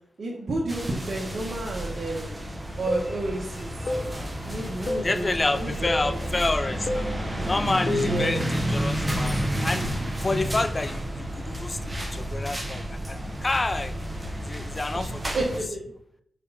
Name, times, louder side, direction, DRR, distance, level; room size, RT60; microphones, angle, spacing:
voice 1, 0.2-2.4 2.8-3.9 4.4-5.3 5.5-6.2 8.0-8.4 14.9-15.8, right 2 dB, 65° right, -3 dB, 1.3 m, -31 dB
sound 1, 0.7-15.6, equal, 20° right, 1.3 m, -31 dB
sound 2, 2.9-3.1 3.9-4.1 4.9-5.1 5.9-6.1 6.9-7.1 7.9-8.2, left 2 dB, 55° left, 1.0 m, -28 dB
voice 2, 5.0-7.1 7.4-9.9 10.2-14.0 14.4-15.4, left 2 dB, 35° left, 11 dB, 0.6 m, -29 dB
4.8 x 4.6 x 5.5 m, 0.70 s
cardioid pair, 45°, 0 cm